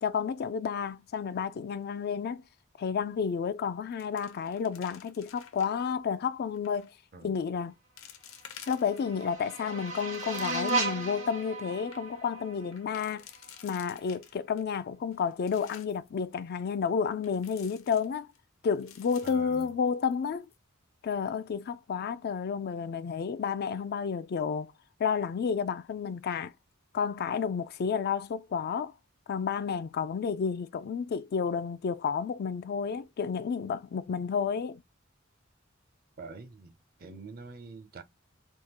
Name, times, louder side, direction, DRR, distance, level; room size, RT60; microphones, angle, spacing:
voice 1, 0.0-2.4 2.8-6.9 7.2-7.7 8.7-13.3 13.6-18.3 18.6-20.5 21.0-24.7 25.0-26.5 26.9-28.9 29.3-34.8, left 6 dB, 50° left, 0.3 m, -31 dB
sound 1, 3.2-3.5 3.8-5.9 6.5-6.9 7.5-7.6 8.0-9.3 9.7-11.0 11.4-11.5 11.7-12.0 12.7-14.6 15.1-16.1 17.2-18.4 18.7-20.2 20.5-20.6 21.1-21.4, left 9 dB, 75° left, 0.8 m, -52 dB
sound 2, 8.5-13.5, right 3 dB, 85° right, 1.4 m, -35 dB
voice 2, 19.2-19.7 36.2-38.0, right 3 dB, 45° right, 0.6 m, -46 dB
3.5 x 2.3 x 2.9 m
head